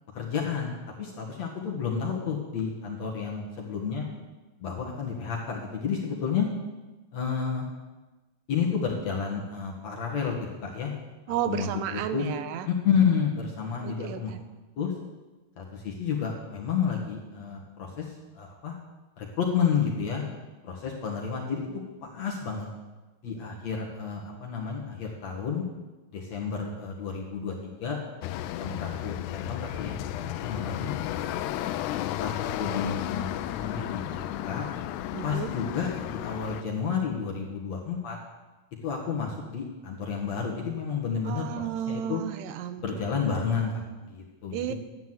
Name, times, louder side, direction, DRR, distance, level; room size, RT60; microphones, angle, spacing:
voice 1, 0.1-4.1 4.6-6.5 7.1-7.7 8.5-10.9 11.4-12.3 12.7-14.3 14.8-14.9 15.6-18.8 19.2-20.2 20.6-21.7 22.0-22.7 23.2-25.6 26.1-28.0 28.6-31.5 32.2-34.7 35.2-38.2 38.8-42.2 42.8-44.7, left 6 dB, 55° left, -1 dB, 2.3 m, -31 dB
voice 2, 11.3-12.7 13.8-14.4 35.1-35.5 41.2-42.8 43.1-43.6 44.5-44.7, right 10 dB, 85° right, 10 dB, 2.9 m, -33 dB
sound 1, 28.2-36.6, left 13 dB, 85° left, 2.7 m, -33 dB
11.5 x 9.3 x 7.7 m, 1.2 s
omnidirectional pair, 4.7 m